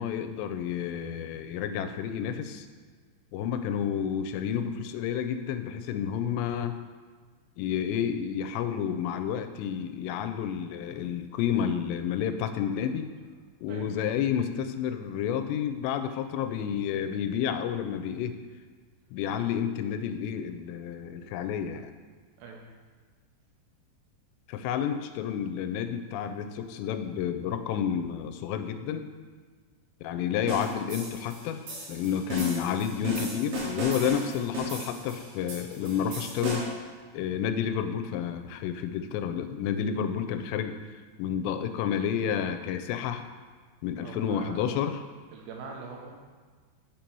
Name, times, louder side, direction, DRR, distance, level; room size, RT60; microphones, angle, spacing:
voice 1, 0.0-2.7 3.3-6.8 7.6-13.1 13.6-18.4 19.1-21.9 24.5-29.1 30.0-31.6 31.9-36.7 37.1-40.8 41.2-43.3 43.8-45.0, left 8 dB, 85° left, 8 dB, 2.7 m, -30 dB
voice 2, 22.4-22.7 44.0-44.7 45.3-46.1, right 4 dB, 85° right, 0 dB, 3.1 m, -42 dB
sound 1, 30.5-36.9, equal, 60° right, 2.9 m, -35 dB
7.0 x 4.5 x 5.3 m, 1.5 s
omnidirectional pair, 4.9 m